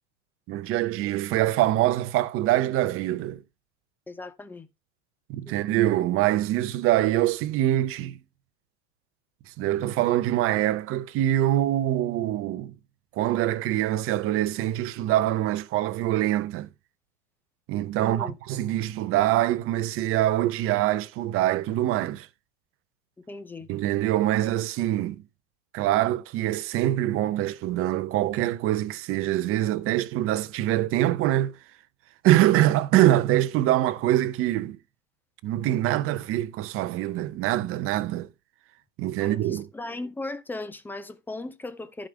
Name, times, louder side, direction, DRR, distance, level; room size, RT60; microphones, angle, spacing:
voice 1, 0.5-3.4 5.3-8.2 9.6-12.7 13.2-16.7 17.7-22.3 23.7-25.2 25.7-31.5 32.2-34.8 35.4-38.3 39.0-39.7, right 14 dB, 35° right, 0.8 m, -24 dB
voice 2, 4.1-4.7 5.4-5.6 18.0-18.4 23.3-23.7 39.2-42.1, left 2 dB, 5° left, 0.7 m, -37 dB
14.5 x 5.2 x 3.3 m
hypercardioid pair, 115°, 38 cm